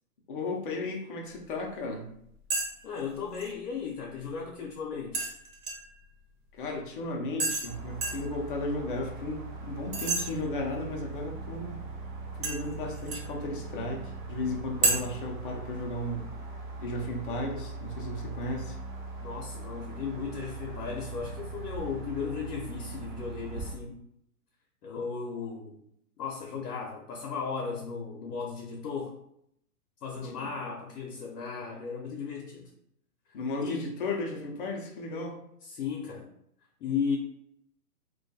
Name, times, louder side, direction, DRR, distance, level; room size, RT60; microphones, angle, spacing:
voice 1, 0.3-2.1 6.5-11.9 12.3-16.3 16.8-18.8 30.2-30.4 33.3-35.4, left 2 dB, 35° left, 0 dB, 0.4 m, -35 dB
sound 1, 2.5-2.7 3.0-3.5 5.1-6.0 7.4-7.7 8.0-8.3 9.9-10.2 12.4-13.3 14.8-14.9, right 3 dB, 65° right, 1.1 m, -29 dB
voice 2, 2.8-5.3 19.2-24.0 24.8-25.8 26.2-29.2 30.0-32.7 33.6-33.8 35.6-36.3 36.8-37.2, left 6 dB, 85° left, -1 dB, 0.6 m, -35 dB
sound 2, 7.6-23.7, right 3 dB, 35° right, 0.4 m, -40 dB
2.2 x 2.2 x 2.6 m, 0.74 s
hypercardioid pair, 140°, 46 cm